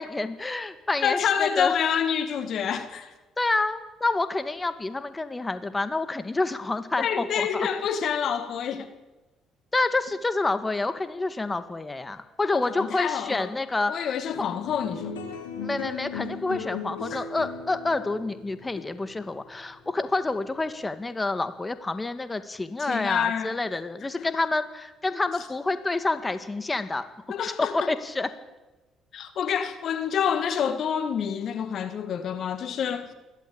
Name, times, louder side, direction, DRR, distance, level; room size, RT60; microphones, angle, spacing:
voice 1, 0.0-1.7 3.4-7.7 9.7-13.9 15.6-27.0 27.6-28.3, left 2 dB, 20° left, 1.9 m, -28 dB
voice 2, 1.0-3.1 7.0-8.9 12.5-13.5 13.9-15.1 17.1-17.2 18.7-18.8 22.9-23.6 24.2-24.3 27.3-27.9 29.1-33.1, left 8 dB, 60° left, 2.0 m, -27 dB
sound 1, 14.3-20.9, left 5 dB, 90° left, 3.1 m, -38 dB
28.5 x 13.0 x 8.7 m
hypercardioid pair, 50°, 0 cm